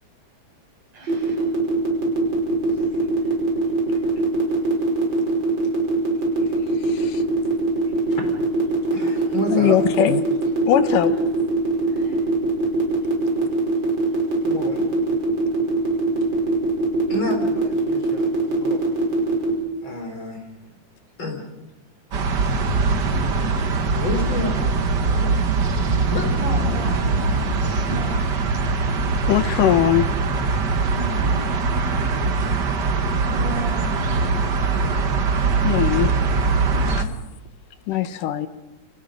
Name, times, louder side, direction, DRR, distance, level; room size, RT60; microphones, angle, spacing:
voice 1, 0.9-1.5 11.1-11.2 11.9-12.2 13.4-13.5 26.4-27.3 27.6-28.9 31.0-31.3 32.0-32.1 33.2-35.1 36.7-37.1 37.9-38.0, right 2 dB, 70° right, 8.8 m, -36 dB
sound 1, 1.1-19.5, right 2 dB, 35° right, 6.2 m, -22 dB
voice 2, 6.8-7.2 9.5-10.2 10.7-11.2 29.3-30.1 35.6-36.2 37.0-37.1 37.9-38.5, left 11 dB, 80° left, 2.6 m, -20 dB
voice 3, 8.9-9.7 14.4-14.8 17.1-18.8 19.8-20.4 21.2-21.5 23.2-25.4 26.1-26.3, left 1 dB, 35° left, 5.0 m, -30 dB
sound 2, 22.1-37.0, right 4 dB, 50° right, 1.3 m, -22 dB
29.5 x 25.5 x 5.3 m
omnidirectional pair, 3.7 m